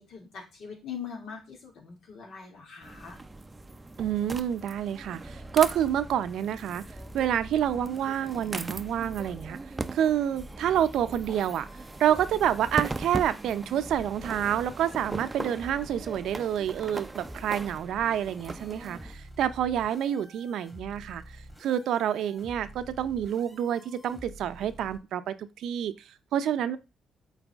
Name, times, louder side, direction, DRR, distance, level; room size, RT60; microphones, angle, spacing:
voice 1, 0.0-3.2, left 7 dB, 70° left, 2.3 m, -42 dB
sound 1, 2.8-19.1, right 2 dB, 20° right, 0.5 m, -39 dB
voice 2, 4.0-6.8 7.1-9.6 9.9-11.7 12.0-21.2 21.6-26.8, right 10 dB, 75° right, 0.6 m, -28 dB
sound 2, 5.2-6.1 6.9-9.5 10.4-13.0 13.8-25.0, equal, 5° left, 1.7 m, -48 dB
8.1 x 4.1 x 3.5 m
cardioid pair, 90°, 0 cm